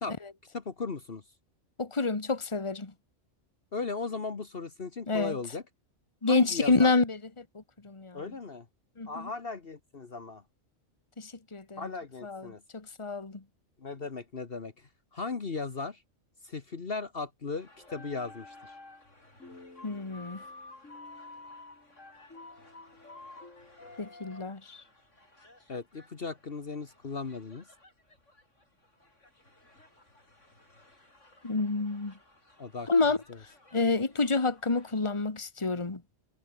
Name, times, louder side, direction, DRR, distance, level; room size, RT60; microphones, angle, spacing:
voice 1, 0.5-1.2 3.7-5.6 6.3-6.9 8.1-8.7 9.1-10.4 11.8-12.6 13.8-16.0 16.4-18.7 25.7-27.7 32.6-32.9, left 4 dB, 50° left, 1.7 m, -37 dB
voice 2, 1.8-2.9 5.1-5.4 6.2-8.3 9.0-9.3 11.2-11.9 12.2-13.4 19.8-20.4 24.0-24.8 31.4-32.1 32.9-36.0, left 3 dB, 25° left, 1.8 m, -29 dB
sound 1, 17.5-34.9, left 1 dB, 70° left, 7.3 m, -61 dB
sound 2, 17.8-19.1 19.4-24.5, left 2 dB, 90° left, 4.6 m, -49 dB
omnidirectional pair, 1.3 m